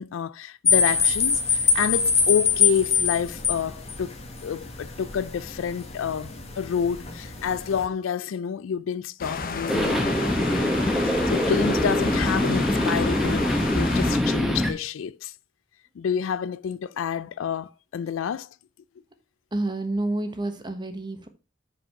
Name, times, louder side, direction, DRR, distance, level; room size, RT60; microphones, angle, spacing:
voice 1, 0.0-10.2 11.0-15.3 16.0-18.5, left 7 dB, 85° left, 0.4 m, -29 dB
sound 1, 0.6-7.9, left 6 dB, 35° left, 1.3 m, -25 dB
sound 2, 9.2-14.2, left 5 dB, 50° left, 0.9 m, -32 dB
sound 3, 9.7-14.7, left 1 dB, ahead, 1.2 m, -23 dB
voice 2, 19.5-21.3, right 2 dB, 25° right, 1.2 m, -29 dB
6.6 x 5.5 x 5.8 m
head